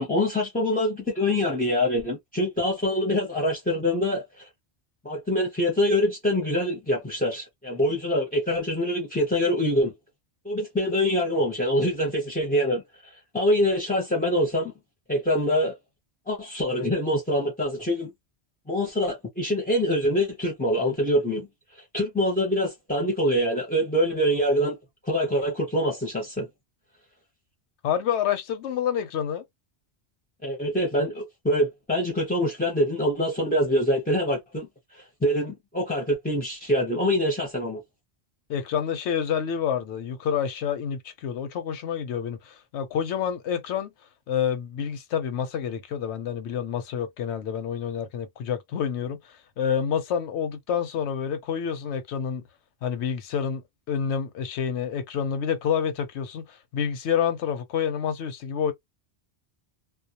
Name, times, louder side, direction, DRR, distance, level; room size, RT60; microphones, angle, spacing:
voice 1, 0.0-4.5 5.0-9.9 10.4-14.7 15.1-15.8 16.3-18.1 18.7-21.5 21.7-24.8 25.0-26.5 30.4-37.8, equal, 10° left, 0.5 m, -25 dB
voice 2, 27.8-29.4 38.5-43.9 44.3-49.2 49.6-52.4 52.8-53.6 53.9-58.7, left 8 dB, 85° left, 0.9 m, -28 dB
2.2 x 2.0 x 2.8 m
omnidirectional pair, 1.1 m